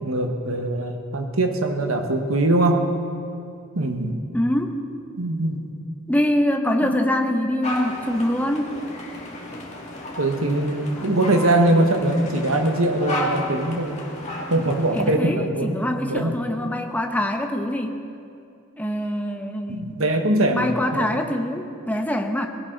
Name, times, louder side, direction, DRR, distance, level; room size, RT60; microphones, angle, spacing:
voice 1, 0.0-2.9 3.7-4.2 5.2-5.6 6.8-6.9 10.2-14.1 14.5-16.4 19.7-21.3, right 1 dB, 75° right, 4 dB, 1.5 m, -22 dB
voice 2, 4.3-4.8 6.1-8.8 14.9-18.0 18.8-20.1 20.5-22.5, left 1 dB, 5° left, 4 dB, 0.9 m, -24 dB
sound 1, 7.6-15.1, left 1 dB, 35° left, 2.3 m, -33 dB
20.0 x 16.5 x 4.0 m, 2.5 s
head